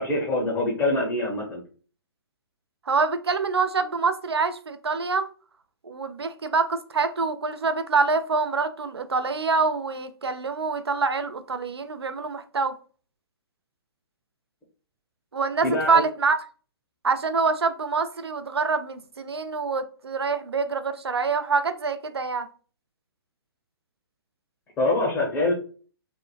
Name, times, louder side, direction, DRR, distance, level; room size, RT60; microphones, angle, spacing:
voice 1, 0.0-1.6 15.6-16.0 24.8-25.5, left 2 dB, 15° left, 0.6 m, -24 dB
voice 2, 2.9-5.3 5.8-12.7 15.3-16.4 17.0-22.5, right 4 dB, 80° right, 0.4 m, -25 dB
3.0 x 2.0 x 2.2 m
figure-of-eight pair, 125°, 13 cm